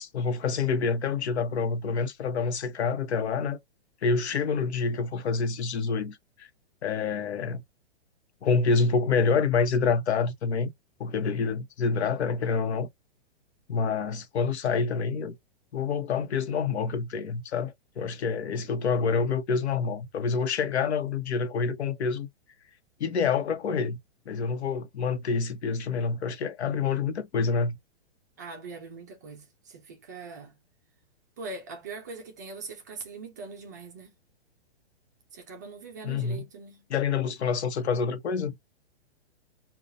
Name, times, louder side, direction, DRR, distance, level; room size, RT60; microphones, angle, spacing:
voice 1, 0.0-3.6 4.0-6.5 6.8-7.6 8.4-10.7 11.0-12.9 13.7-15.3 15.7-22.3 23.0-24.0 24.3-27.8 36.0-36.4 36.9-38.5, left 5 dB, 90° left, 1.0 m, -27 dB
voice 2, 28.4-30.6 31.4-34.1 35.3-36.9, right 4 dB, 20° right, 0.4 m, -42 dB
5.3 x 2.4 x 2.6 m
hypercardioid pair, 165°, 32 cm